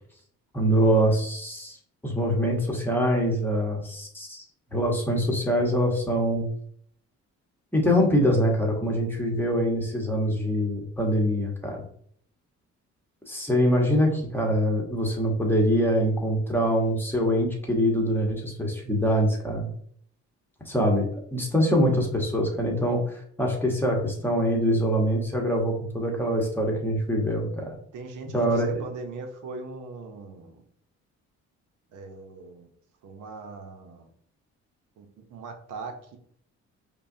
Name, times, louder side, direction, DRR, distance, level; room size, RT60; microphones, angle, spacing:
voice 1, 0.5-1.8 2.0-4.4 4.7-6.5 7.7-11.9 13.3-19.7 20.7-27.8 28.3-28.7, equal, 5° left, 0 dB, 1.1 m, -24 dB
voice 2, 27.9-30.6 31.9-32.7 33.0-34.1 35.0-36.2, right 3 dB, 90° right, 4 dB, 0.8 m, -40 dB
5.3 x 2.3 x 2.7 m, 0.63 s
cardioid pair, 90°, 30 cm